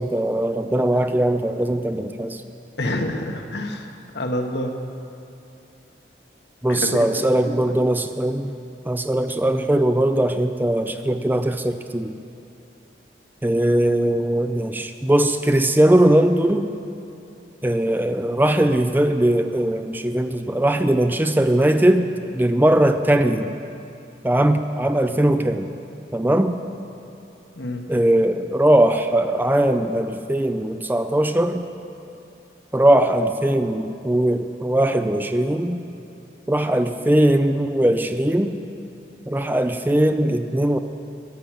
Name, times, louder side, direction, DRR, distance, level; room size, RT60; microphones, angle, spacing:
voice 1, 0.0-2.4 6.6-8.5 8.9-12.2 13.4-16.7 17.6-23.5 24.2-25.7 26.1-26.6 27.9-31.7 32.7-35.8 36.5-38.6 39.3-40.8, right 1 dB, 10° right, 8 dB, 0.4 m, -20 dB
voice 2, 2.8-3.9 4.1-4.7 6.7-7.6 27.5-27.9, left 1 dB, 80° left, 4 dB, 1.3 m, -27 dB
13.0 x 10.0 x 7.6 m, 2.8 s
head